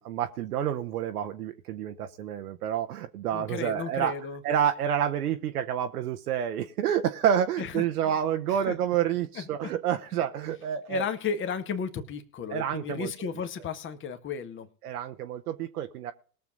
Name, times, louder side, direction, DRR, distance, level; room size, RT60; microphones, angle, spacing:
voice 1, 0.0-4.1 4.4-11.0 12.5-13.1 14.8-16.1, right 9 dB, 65° right, 7 dB, 1.2 m, -28 dB
voice 2, 3.3-4.4 7.6-7.8 8.7-8.8 9.4-9.7 10.9-14.7, left 6 dB, 25° left, 7 dB, 1.7 m, -34 dB
21.0 x 7.2 x 3.9 m, 0.43 s
hypercardioid pair, 100°, 49 cm